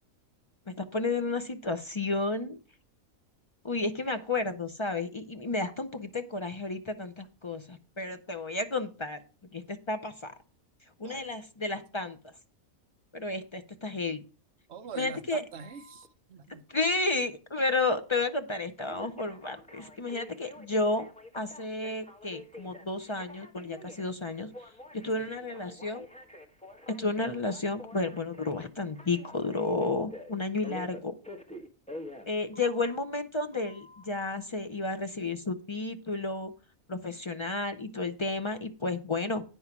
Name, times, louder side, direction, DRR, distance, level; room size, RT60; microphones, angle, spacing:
voice 1, 0.7-2.6 3.6-9.2 9.5-10.3 11.0-12.3 13.1-14.2 15.0-15.4 16.7-21.1 21.3-24.5 25.0-26.1 27.0-31.1 32.2-36.5 36.9-39.4, left 3 dB, 45° left, 8 dB, 0.3 m, -32 dB
voice 2, 14.7-16.6 25.2-25.3, right 6 dB, 60° right, 8 dB, 0.8 m, -44 dB
Telephone, 15.5-16.1 18.9-33.0 33.5-34.0, left 1 dB, 5° left, 1.1 m, -47 dB
9.6 x 5.5 x 5.9 m, 0.34 s
omnidirectional pair, 1.5 m